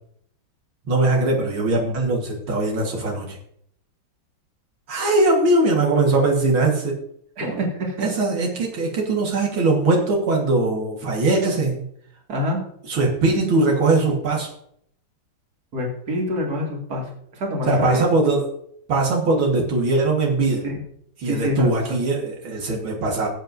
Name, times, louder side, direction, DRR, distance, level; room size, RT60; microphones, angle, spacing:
voice 1, 0.9-3.4 4.9-7.0 8.0-11.9 12.9-14.5 17.7-18.4 18.9-20.6 21.2-23.3, right 2 dB, 80° right, -1 dB, 2.4 m, -20 dB
voice 2, 7.4-8.1 12.3-12.6 15.7-18.1 20.6-20.8 21.3-21.7, left 1 dB, 50° right, -1 dB, 2.8 m, -26 dB
18.0 x 7.9 x 2.6 m, 0.69 s
omnidirectional pair, 2.2 m